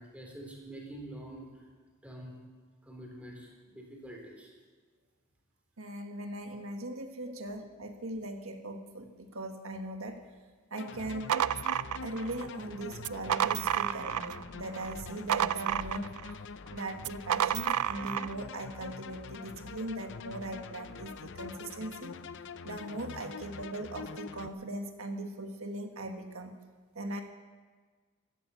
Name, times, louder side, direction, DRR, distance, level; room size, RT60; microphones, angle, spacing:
voice 1, 0.0-1.6 2.0-2.4 2.8-4.5, right 1 dB, 5° right, -1 dB, 3.6 m, -46 dB
voice 2, 5.8-10.2 10.7-11.4 12.0-16.1 16.7-22.2 22.6-26.6 27.0-27.2, right 1 dB, 70° right, 5 dB, 1.6 m, -39 dB
sound 1, 10.8-24.5, left 4 dB, 55° left, 0.6 m, -45 dB
sound 2, 11.0-12.5 13.0-14.4 14.8-16.3 17.0-18.3, right 10 dB, 85° right, 0.4 m, -30 dB
15.5 x 13.0 x 6.9 m, 1.5 s
head